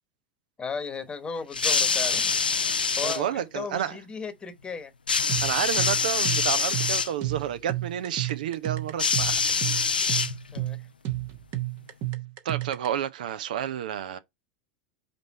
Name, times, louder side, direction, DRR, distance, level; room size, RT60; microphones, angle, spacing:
voice 1, 0.6-4.9 10.5-10.9, left 5 dB, 20° left, 1.1 m, -36 dB
sound 1, 1.5-3.2 5.1-7.1 9.0-10.7 11.7-11.8, left 5 dB, 80° left, 0.4 m, -25 dB
voice 2, 3.0-4.0 5.4-9.4 12.4-14.2, right 10 dB, 65° right, 0.5 m, -30 dB
sound 2, 5.3-12.9, right 17 dB, 45° right, 1.0 m, -32 dB
5.2 x 4.3 x 4.2 m
figure-of-eight pair, 80°, 5 cm